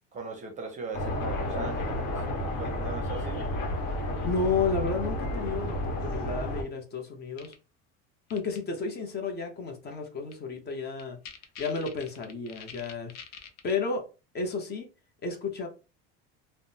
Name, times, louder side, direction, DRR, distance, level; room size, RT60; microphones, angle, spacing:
voice 1, 0.1-3.5, right 4 dB, 25° right, 0.6 m, -39 dB
sound 1, 0.9-6.6, left 1 dB, 70° left, 1.0 m, -31 dB
voice 2, 4.2-7.5 8.3-11.2 11.6-13.1 13.6-14.0 14.3-14.9 15.2-15.7, left 4 dB, 30° left, 0.7 m, -32 dB
sound 2, 7.4-7.5 8.3-8.6 10.3-10.4 10.7-10.8 11.0-13.7, left 7 dB, 90° left, 0.7 m, -44 dB
3.4 x 2.0 x 2.7 m
cardioid pair, 140°, 31 cm